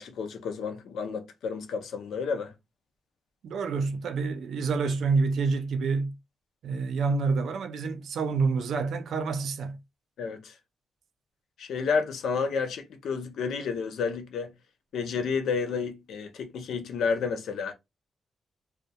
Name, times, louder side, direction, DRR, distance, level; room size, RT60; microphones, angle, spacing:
voice 1, 0.0-2.5 10.2-10.5 11.6-14.5 14.9-17.7, left 5 dB, 85° left, 0.5 m, -30 dB
voice 2, 3.4-6.1 6.6-9.8, right 4 dB, 80° right, 0.4 m, -28 dB
2.2 x 2.1 x 2.7 m
cardioid pair, 125°, 0 cm